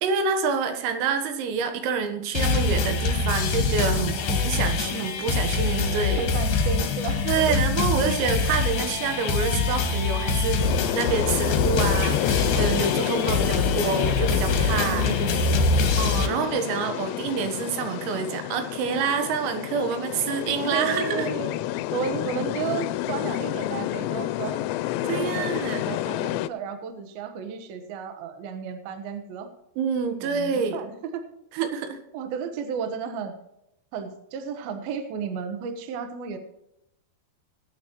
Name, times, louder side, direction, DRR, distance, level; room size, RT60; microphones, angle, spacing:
voice 1, 0.0-6.2 7.3-10.6 10.9-15.1 16.0-21.3 25.1-25.8 29.8-30.8 31.5-32.0, right 6 dB, 85° right, 7 dB, 4.0 m, -27 dB
sound 1, 2.3-16.3, left 3 dB, 65° left, 2.3 m, -24 dB
voice 2, 6.2-7.6 8.0-8.2 13.2-14.5 14.8-15.7 20.7-21.5 21.9-24.6 25.0-29.5 30.2-31.2 32.1-33.3 33.9-36.4, right 6 dB, 65° right, 7 dB, 2.5 m, -33 dB
sound 2, 10.6-26.5, left 15 dB, 85° left, 3.2 m, -29 dB
21.0 x 9.2 x 3.1 m, 0.82 s
omnidirectional pair, 6.0 m